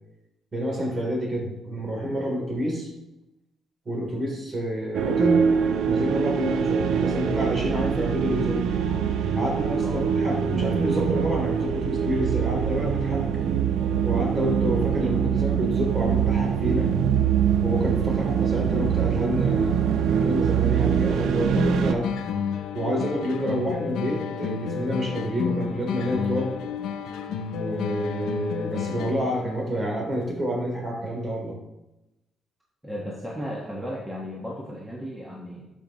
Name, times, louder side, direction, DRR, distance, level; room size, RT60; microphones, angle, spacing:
voice 1, 0.5-2.9 3.8-5.5 5.8-8.6 9.3-13.2 14.0-16.9 17.6-22.1 22.7-26.6 27.5-31.6, equal, 35° right, -2 dB, 3.1 m, -28 dB
sound 1, 4.9-21.9, right 7 dB, 80° right, 0.6 m, -24 dB
voice 2, 9.8-10.2 18.1-18.2 23.4-23.7 32.8-35.7, equal, 5° right, -3 dB, 1.3 m, -35 dB
sound 2, 21.6-29.5, left 7 dB, 85° left, 0.6 m, -31 dB
12.0 x 5.4 x 3.0 m, 0.95 s
cardioid pair, 90°, 0 cm